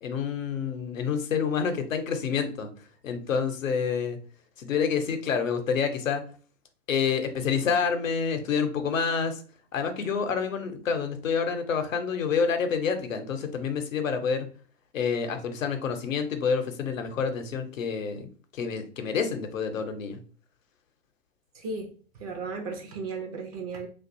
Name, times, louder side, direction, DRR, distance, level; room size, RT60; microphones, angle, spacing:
voice 1, 0.0-2.7 3.0-4.2 4.6-6.2 6.9-9.4 9.7-14.5 14.9-20.2, left 6 dB, 80° left, 0.7 m, -28 dB
voice 2, 21.5-21.9 22.2-23.9, right 4 dB, 30° right, 0.4 m, -35 dB
2.6 x 2.3 x 2.5 m
hypercardioid pair, 110°, 39 cm